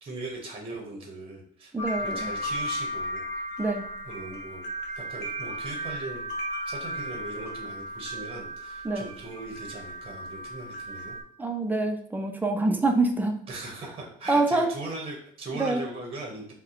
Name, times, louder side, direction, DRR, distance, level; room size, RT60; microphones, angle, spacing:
voice 1, 0.0-1.7 2.0-3.2 4.0-4.6 4.9-6.3 6.7-11.2 13.5-16.5, right 2 dB, 35° right, 1 dB, 0.8 m, -39 dB
voice 2, 1.7-2.3 3.6-3.9 8.8-9.1 11.4-13.4 14.3-14.7 15.5-15.8, right 2 dB, 10° right, 3 dB, 0.5 m, -25 dB
sound 1, 1.8-11.2, equal, 80° left, 0.7 m, -35 dB
2.7 x 2.1 x 3.7 m, 0.63 s
cardioid pair, 110°, 17 cm